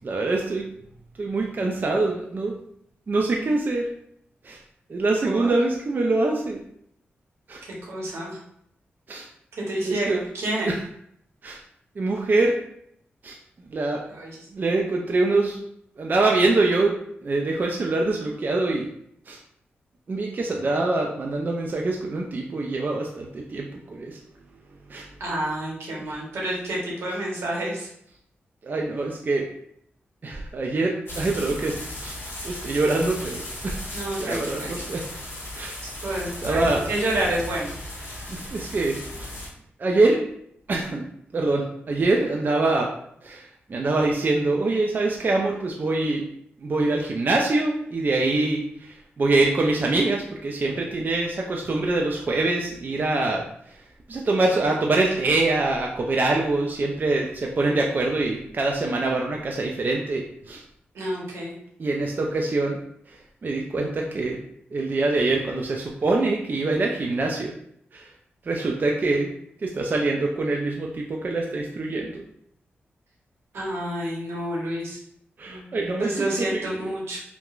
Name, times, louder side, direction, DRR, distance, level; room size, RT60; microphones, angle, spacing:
voice 1, 0.0-0.7 1.2-2.6 3.1-3.9 4.4-4.6 4.9-6.6 7.5-7.6 9.1-9.3 9.9-10.2 10.7-10.8 11.4-11.6 12.0-12.6 13.2-13.4 13.6-14.0 14.5-15.6 16.0-18.9 19.3-19.4 20.1-24.2 24.9-25.1 26.1-26.2 28.6-29.5 30.2-32.2 32.4-33.8 34.2-35.1 35.5-35.8 36.4-36.9 38.3-39.3 39.8-40.3 40.7-41.0 41.3-42.9 43.2-46.3 46.6-60.6 61.8-62.8 63.1-64.4 64.7-67.5 67.9-68.1 68.4-69.3 69.6-72.2 75.4-76.9, right 2 dB, 45° right, 0 dB, 0.4 m, -24 dB
voice 2, 7.8-8.4 9.5-10.8 14.1-14.4 25.2-27.9 33.9-34.8 35.8-37.7 38.0-38.3 60.9-61.5 73.5-75.0 75.4-75.7 76.0-77.2, right 1 dB, 85° right, -4 dB, 0.9 m, -29 dB
sound 1, 31.1-39.5, left 1 dB, 65° left, 1.1 m, -36 dB
2.9 x 2.1 x 2.4 m, 0.70 s
cardioid pair, 60°, 4 cm